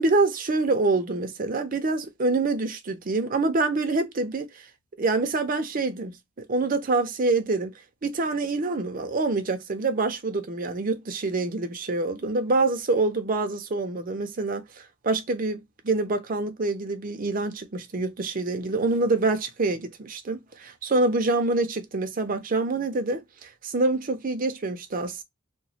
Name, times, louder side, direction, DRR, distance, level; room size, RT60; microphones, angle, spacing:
voice 1, 0.0-4.5 5.0-6.1 6.5-7.7 8.0-14.6 15.0-25.2, right 3 dB, 40° right, 0.6 m, -26 dB
3.0 x 2.1 x 2.7 m
head